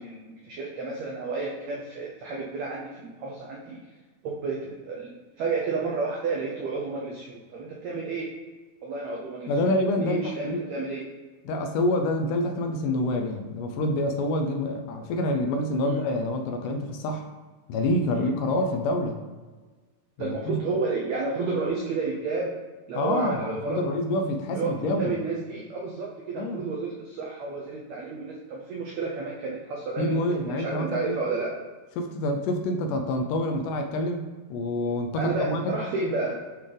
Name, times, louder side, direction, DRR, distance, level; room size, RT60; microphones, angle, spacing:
voice 1, 0.0-3.8 4.2-8.3 8.8-9.7 10.0-11.0 15.8-16.0 18.1-18.3 20.2-22.5 22.9-23.8 24.5-30.2 30.5-31.6 35.2-36.4, right 3 dB, 90° right, -2 dB, 1.5 m, -31 dB
voice 2, 9.5-10.6 11.5-17.2 17.7-19.2 20.2-20.6 23.0-25.2 26.4-26.6 30.0-31.2 32.0-35.8, left 1 dB, 80° left, 4 dB, 2.0 m, -27 dB
8.2 x 3.8 x 3.3 m, 1.3 s
omnidirectional pair, 4.0 m